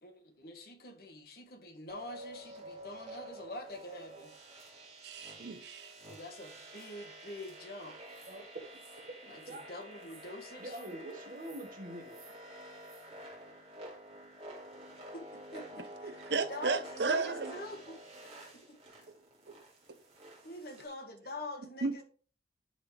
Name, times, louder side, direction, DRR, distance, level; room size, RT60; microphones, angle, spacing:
voice 1, 0.0-4.3 6.1-8.0 9.3-10.8 15.1-18.8 20.4-22.0, left 1 dB, 55° left, 1.5 m, -45 dB
sound 1, 1.9-20.9, right 1 dB, 35° right, 2.4 m, -50 dB
voice 2, 5.0-5.9 16.0-17.5 19.5-19.6 21.8-22.0, right 4 dB, 70° right, 0.7 m, -34 dB
voice 3, 8.3-8.6 9.1-9.7 10.6-12.2, right 1 dB, 50° right, 1.5 m, -45 dB
11.0 x 4.0 x 3.3 m
head